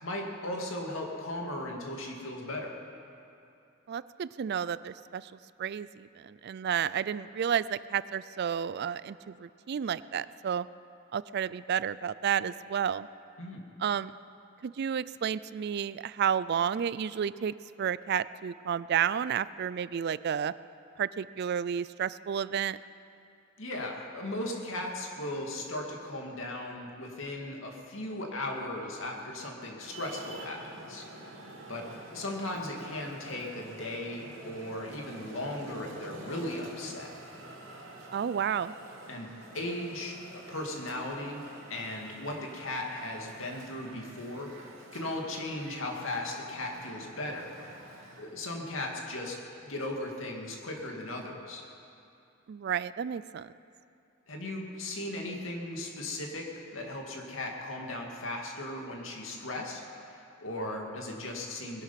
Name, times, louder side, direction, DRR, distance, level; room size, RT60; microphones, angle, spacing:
voice 1, 0.0-2.8 13.4-13.6 23.6-31.1 31.7-37.1 39.1-39.3 39.5-41.4 41.7-47.6 48.2-51.6 54.3-56.5 56.7-61.8, left 1 dB, 80° left, 0 dB, 2.3 m, -37 dB
voice 2, 3.9-5.3 5.6-10.7 11.1-13.1 13.8-14.1 14.6-20.5 21.0-22.8 38.1-38.7 52.5-53.5, right 8 dB, 55° right, 17 dB, 0.3 m, -31 dB
Traffic noise roadway noise, 29.8-48.5, right 2 dB, 85° right, 2.4 m, -48 dB
20.5 x 11.0 x 5.8 m, 2.7 s
head